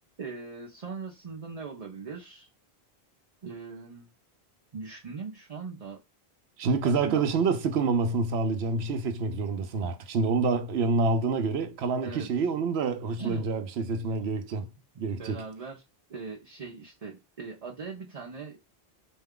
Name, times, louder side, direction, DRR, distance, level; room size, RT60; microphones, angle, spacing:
voice 1, 0.2-2.5 3.4-4.1 4.7-6.0 6.8-7.2 12.0-12.3 13.2-13.5 14.9-15.8 16.1-18.6, right 5 dB, 40° right, 0.7 m, -40 dB
voice 2, 6.6-14.7 15.0-15.4, right 4 dB, 85° right, 0.9 m, -27 dB
4.3 x 2.3 x 3.6 m
omnidirectional pair, 1.1 m